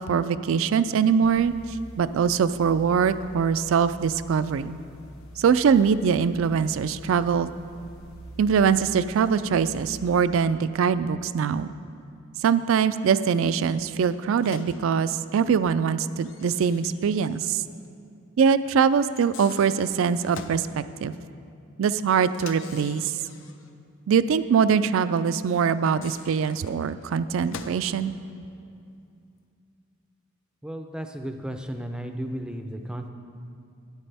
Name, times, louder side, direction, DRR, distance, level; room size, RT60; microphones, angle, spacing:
voice 1, 0.0-1.5 2.0-4.8 5.4-7.5 8.4-11.7 12.4-17.6 18.4-21.1 21.8-23.1 24.1-28.1, right 6 dB, 65° right, 14 dB, 0.3 m, -23 dB
sound 1, 1.2-10.3, equal, 80° left, 1.0 m, -46 dB
Microwave oven, 14.4-14.8 16.2-17.6 17.8-17.9 19.1-20.7 22.3-23.7 25.7-27.9, left 5 dB, 65° left, 0.6 m, -45 dB
voice 2, 30.6-33.1, equal, 5° right, 5 dB, 0.5 m, -34 dB
12.5 x 9.6 x 3.4 m, 2.5 s
head